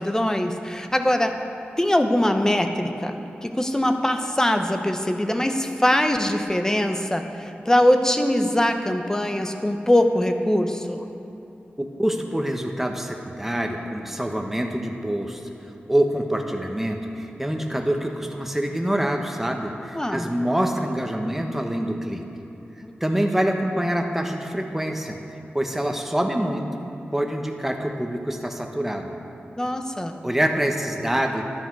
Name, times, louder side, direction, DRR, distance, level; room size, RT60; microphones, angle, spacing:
voice 1, 0.0-1.4 1.8-3.2 3.4-11.1 19.9-20.3 29.6-30.2, left 1 dB, 15° left, 6 dB, 0.9 m, -22 dB
voice 2, 11.8-15.4 15.9-22.2 23.0-25.2 25.5-26.7 27.1-29.2 30.2-31.4, right 1 dB, 10° right, 3 dB, 1.3 m, -25 dB
12.5 x 11.0 x 4.7 m, 2.9 s
cardioid pair, 60°, 4 cm